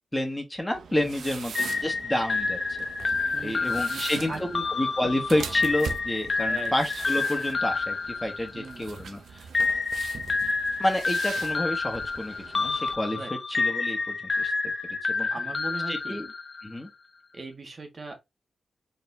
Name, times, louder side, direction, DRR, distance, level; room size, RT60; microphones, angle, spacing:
voice 1, 0.1-3.1 3.4-4.5 4.7-9.5 10.8-13.2 13.5-14.5 15.0-15.3 15.9-16.3 16.6-16.9, left 1 dB, 10° left, 1.7 m, -29 dB
sound 1, 0.7-12.9, right 6 dB, 85° right, 0.7 m, -42 dB
voice 2, 0.9-1.2 3.3-4.6 6.5-6.7 8.5-8.9 13.1-13.3 15.3-16.2 17.3-18.2, right 3 dB, 40° right, 1.6 m, -39 dB
sound 2, 1.5-9.0 9.5-16.8, left 4 dB, 45° left, 0.6 m, -29 dB
4.4 x 4.1 x 2.8 m
cardioid pair, 85°, 0 cm